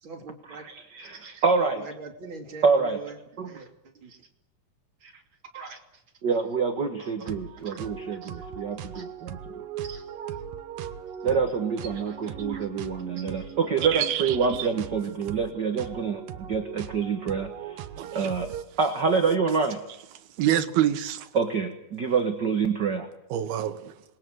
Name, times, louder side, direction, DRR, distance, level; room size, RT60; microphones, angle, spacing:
voice 1, 0.0-1.4 1.8-4.3 5.0-5.2 5.5-6.0 7.0-7.3 7.6-7.8 8.1-8.5 8.9-9.1 9.8-10.4 11.9-12.7 13.1-13.6, right 4 dB, 35° right, 3.0 m, -44 dB
voice 2, 1.4-1.8 2.6-3.0 3.4-3.5 6.2-9.4 11.2-17.8 18.1-18.5 18.8-19.8 21.3-23.1, right 5 dB, 55° right, 1.2 m, -26 dB
sound 1, 7.2-18.6, right 9 dB, 70° right, 2.6 m, -39 dB
voice 3, 13.9-14.7 18.0-18.3 20.4-21.3 23.3-23.9, right 12 dB, 90° right, 3.2 m, -27 dB
27.0 x 21.0 x 7.9 m
omnidirectional pair, 4.3 m